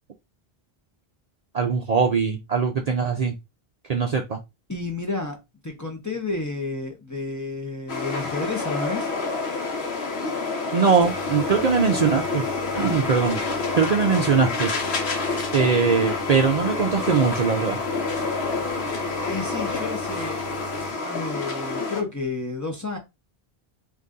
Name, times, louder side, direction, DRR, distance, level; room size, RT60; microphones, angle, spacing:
voice 1, 1.5-3.4 3.9-4.4 10.7-12.5 12.7-14.7 15.5-17.8, right 5 dB, 50° right, 0.5 m, -21 dB
voice 2, 4.7-5.4 5.6-9.1 19.3-23.0, left 3 dB, 20° left, 0.9 m, -31 dB
sound 1, 7.9-22.0, left 3 dB, 85° left, 1.2 m, -28 dB
sound 2, 11.0-20.9, left 2 dB, 60° left, 1.0 m, -38 dB
3.9 x 2.7 x 3.7 m
omnidirectional pair, 1.0 m